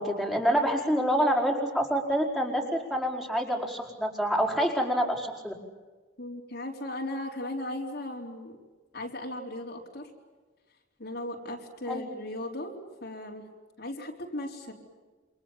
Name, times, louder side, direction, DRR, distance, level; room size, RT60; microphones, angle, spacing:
voice 1, 0.0-5.5 11.9-12.0, equal, ahead, -1 dB, 5.0 m, -27 dB
voice 2, 6.2-8.6 8.9-10.1 11.0-13.5 13.8-14.7, left 1 dB, 55° left, 0 dB, 4.0 m, -37 dB
28.5 x 26.5 x 7.3 m, 1.3 s
head